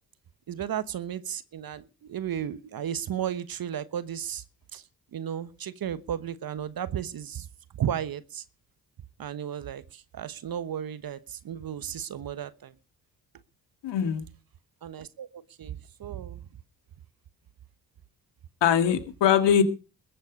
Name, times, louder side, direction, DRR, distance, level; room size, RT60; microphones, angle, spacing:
voice 1, 0.5-4.4 4.7-4.8 5.1-7.5 7.8-8.4 9.2-12.7 14.8-16.4, right 9 dB, 50° right, 1.2 m, -34 dB
voice 2, 13.8-14.2 18.6-19.6, left 9 dB, 65° left, 2.3 m, -22 dB
21.5 x 7.9 x 5.4 m
hypercardioid pair, 40°, 45 cm